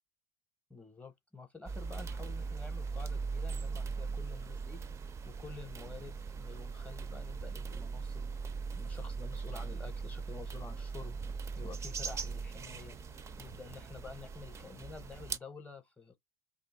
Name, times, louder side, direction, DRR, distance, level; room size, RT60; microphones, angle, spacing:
voice 1, 0.7-4.8 5.3-8.3 8.8-11.2 11.6-13.0 13.4-16.2, left 4 dB, 10° left, 0.7 m, -49 dB
sound 1, 1.7-15.4, right 5 dB, 25° right, 0.4 m, -40 dB
2.6 x 2.1 x 4.0 m
hypercardioid pair, 75°, 12 cm